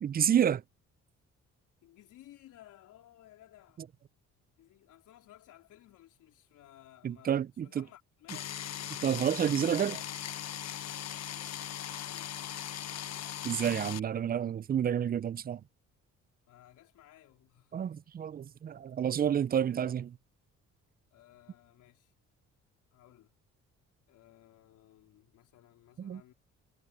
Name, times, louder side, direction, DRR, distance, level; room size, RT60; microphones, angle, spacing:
voice 1, 0.0-0.6 7.0-7.8 9.0-10.0 13.4-15.6 17.7-20.2 26.0-26.2, right 9 dB, 30° right, 0.4 m, -29 dB
voice 2, 1.8-3.9 4.6-8.6 10.8-12.6 16.5-18.0 21.1-22.1 22.9-23.3 24.1-26.3, left 14 dB, 85° left, 3.8 m, -58 dB
sound 1, 8.3-14.0, left 11 dB, 60° left, 0.9 m, -39 dB
cardioid pair, 90°, 30 cm